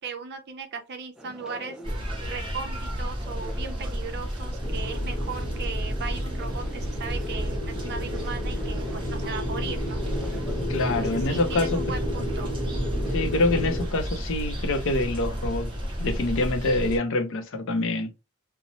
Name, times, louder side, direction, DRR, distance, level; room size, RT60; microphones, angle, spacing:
voice 1, 0.0-1.8 2.3-10.0 11.0-12.5, right 5 dB, 50° right, 0.6 m, -37 dB
sound 1, 1.2-16.6, equal, 5° right, 0.4 m, -45 dB
sound 2, 1.8-17.0, equal, 25° right, 0.8 m, -32 dB
sound 3, 4.6-13.9, equal, 20° left, 0.9 m, -31 dB
voice 2, 10.7-11.7 13.1-15.7 16.0-18.1, left 2 dB, 65° left, 0.5 m, -26 dB
2.7 x 2.0 x 2.9 m
head